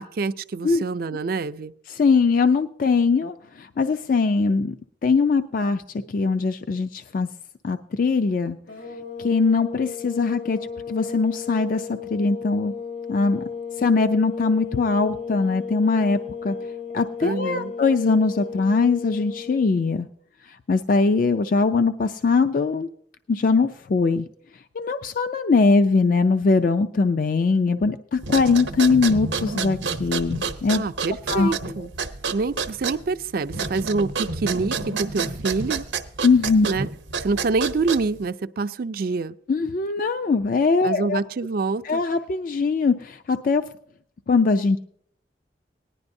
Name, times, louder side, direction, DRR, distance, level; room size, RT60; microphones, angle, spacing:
voice 1, 0.0-1.7 17.2-17.7 30.7-31.9 32.3-35.8 36.6-36.9 37.2-39.3 40.8-42.0, right 4 dB, 55° right, 14 dB, 0.4 m, -26 dB
voice 2, 1.9-4.8 5.0-5.8 6.1-7.3 7.6-8.6 9.2-10.6 10.9-12.7 13.1-13.4 13.8-16.6 16.9-20.1 20.5-22.9 23.3-24.3 24.8-31.5 36.2-36.7 39.5-41.2 41.8-43.6 44.3-44.8, left 4 dB, 50° left, 9 dB, 0.4 m, -21 dB
sound 1, 8.7-19.7, left 5 dB, 85° left, 3.2 m, -34 dB
sound 2, 28.2-38.3, right 5 dB, 80° right, 0.8 m, -29 dB
18.5 x 10.5 x 2.6 m, 0.62 s
head